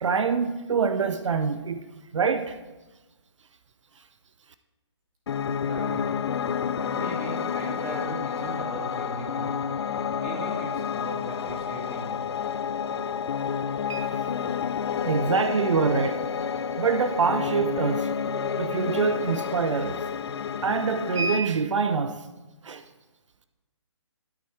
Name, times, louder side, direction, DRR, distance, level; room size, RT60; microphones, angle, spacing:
voice 1, 0.0-1.8 2.1-2.6 13.9-14.0 15.0-16.3 16.8-18.1 18.6-20.0 20.6-22.3 22.6-22.8, right 5 dB, 80° right, 0.5 m, -25 dB
Piano, 5.3-21.4, left 7 dB, 60° left, 0.4 m, -30 dB
voice 2, 5.6-6.0 6.7-9.6 10.2-12.2, right 1 dB, 20° right, 2.3 m, -37 dB
12.5 x 4.6 x 3.2 m
hypercardioid pair, 150°, 15 cm